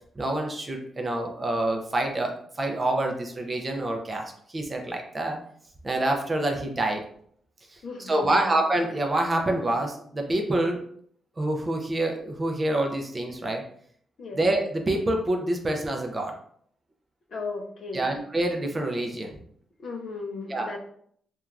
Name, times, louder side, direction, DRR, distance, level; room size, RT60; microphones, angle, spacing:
voice 1, 0.2-5.4 5.8-7.0 7.7-7.8 8.1-10.8 11.4-13.6 14.4-16.3 17.9-19.4 20.5-20.8, right 1 dB, 20° right, 2 dB, 0.3 m, -27 dB
voice 2, 7.8-8.5 14.2-14.4 17.3-18.1 19.8-20.8, left 3 dB, 45° left, 2 dB, 0.4 m, -36 dB
3.2 x 2.2 x 2.4 m, 0.64 s
wide cardioid pair, 180°, 0 cm